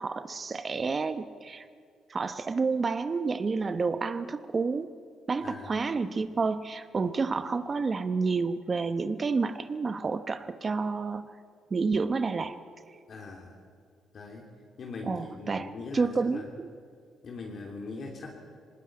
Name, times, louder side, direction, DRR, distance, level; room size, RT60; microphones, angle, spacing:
voice 1, 0.0-1.6 2.1-4.9 5.3-11.3 11.7-12.6 15.0-16.7, right 4 dB, 35° right, 11 dB, 0.9 m, -29 dB
voice 2, 5.4-5.8 13.1-13.5 14.1-14.5 14.8-16.5 17.2-18.3, left 3 dB, 55° left, 0 dB, 3.1 m, -41 dB
19.5 x 19.5 x 8.7 m, 2.2 s
cardioid pair, 90°, 0 cm